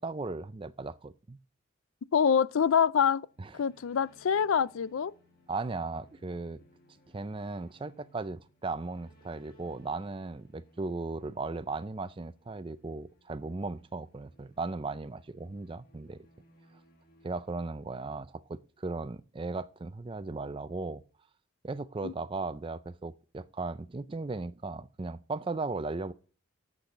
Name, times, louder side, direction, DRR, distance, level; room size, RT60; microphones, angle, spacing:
voice 1, 0.0-1.4 3.4-3.5 5.5-6.6 7.1-16.3 17.2-21.0 21.6-26.1, right 3 dB, 25° right, 0.4 m, -37 dB
voice 2, 2.1-3.3 3.5-5.1 22.0-22.1, left 7 dB, 75° left, 0.4 m, -25 dB
sound 1, 3.2-18.3, equal, 45° left, 1.7 m, -63 dB
7.7 x 6.5 x 7.1 m
head